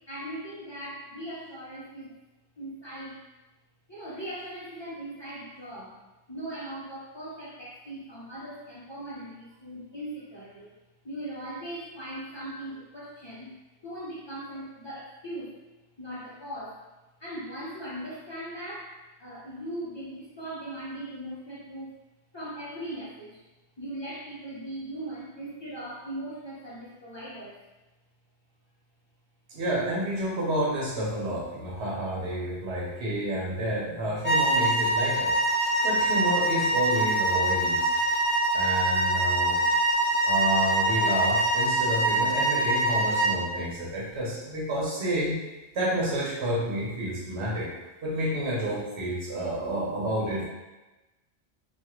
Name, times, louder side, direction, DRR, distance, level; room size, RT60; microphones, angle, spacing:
voice 1, 0.1-2.2 2.6-3.2 3.9-5.9 6.3-10.7 11.0-13.5 13.8-15.6 16.0-16.8 17.2-18.9 19.2-21.9 22.3-23.4 23.8-27.6, right 1 dB, 30° left, -9 dB, 0.5 m, -39 dB
voice 2, 29.5-35.3 35.8-37.9 38.5-39.6 40.3-45.4 45.7-47.7 48.0-50.5, right 1 dB, 80° right, -5 dB, 1.1 m, -30 dB
sound 1, 34.2-43.4, right 1 dB, 10° right, 0.9 m, -24 dB
2.5 x 2.4 x 3.0 m, 1.1 s
omnidirectional pair, 1.1 m